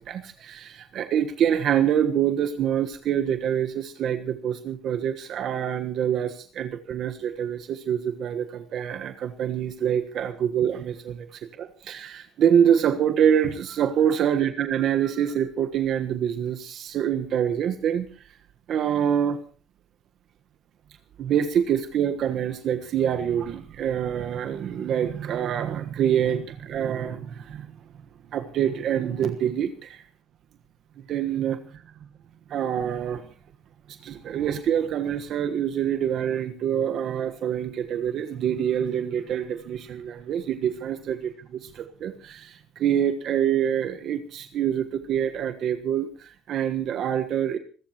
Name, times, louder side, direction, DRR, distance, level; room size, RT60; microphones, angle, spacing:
voice 1, 0.0-18.1 18.7-19.4 21.2-27.7 28.3-30.0 31.1-31.8 32.5-33.2 34.0-47.6, right 9 dB, 50° right, 7 dB, 1.3 m, -26 dB
26.5 x 14.0 x 3.0 m, 0.39 s
cardioid pair, 120°, 0 cm